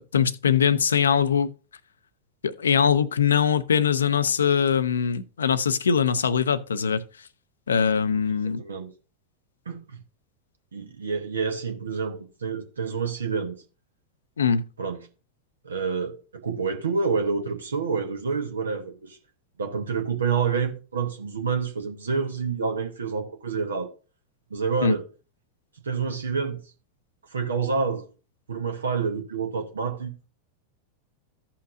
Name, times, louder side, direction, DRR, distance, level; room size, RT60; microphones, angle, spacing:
voice 1, 0.0-1.5 2.4-7.0 7.7-8.6 14.4-14.6 24.8-24.9, left 7 dB, 70° left, 0.5 m, -22 dB
voice 2, 8.1-8.9 9.7-10.0 10.7-13.6 14.8-15.0 15.6-19.2 19.6-23.9 24.5-25.1 25.8-26.6 27.3-28.1 28.5-30.1, right 5 dB, 70° right, 0.9 m, -28 dB
15.0 x 5.6 x 2.6 m
figure-of-eight pair, 90°, 0 cm